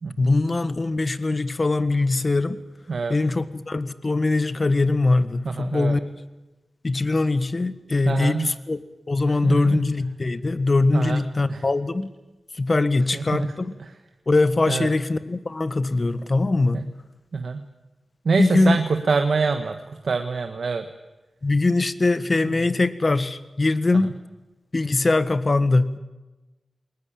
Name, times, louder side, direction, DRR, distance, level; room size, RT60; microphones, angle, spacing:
voice 1, 0.2-2.6 3.1-6.1 6.8-8.8 9.1-12.1 12.6-13.7 14.3-16.9 18.3-18.8 21.4-24.1 24.7-26.0, left 3 dB, 45° left, 13 dB, 1.4 m, -22 dB
voice 2, 5.4-6.0 8.0-8.5 9.3-9.8 10.9-11.2 11.5-11.6 13.1-13.5 13.8-13.9 14.7-14.9 16.7-16.8 17.3-17.6 18.2-20.9, right 4 dB, 70° right, 7 dB, 1.3 m, -25 dB
21.0 x 19.5 x 8.8 m, 1.1 s
cardioid pair, 50°, 0 cm